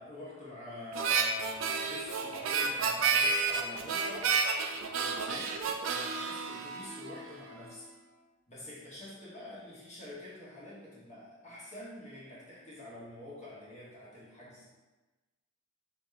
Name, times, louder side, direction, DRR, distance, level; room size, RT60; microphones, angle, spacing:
voice 1, 0.0-4.3 4.9-5.5 5.8-7.9 8.5-14.7, left 1 dB, 35° left, -8 dB, 1.1 m, -46 dB
Harmonica, 0.9-7.4, right 5 dB, 70° right, 0.4 m, -31 dB
3.3 x 2.8 x 3.4 m, 1.2 s
head